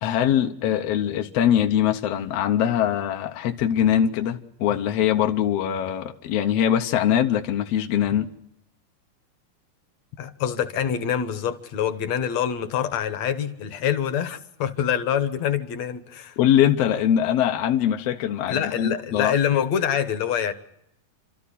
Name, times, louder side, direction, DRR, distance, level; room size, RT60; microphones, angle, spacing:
voice 1, 0.0-8.3 16.4-19.3, left 10 dB, 75° left, 1.4 m, -22 dB
voice 2, 10.2-16.4 18.5-20.5, left 9 dB, 60° left, 1.9 m, -25 dB
30.0 x 13.0 x 10.0 m
omnidirectional pair, 4.2 m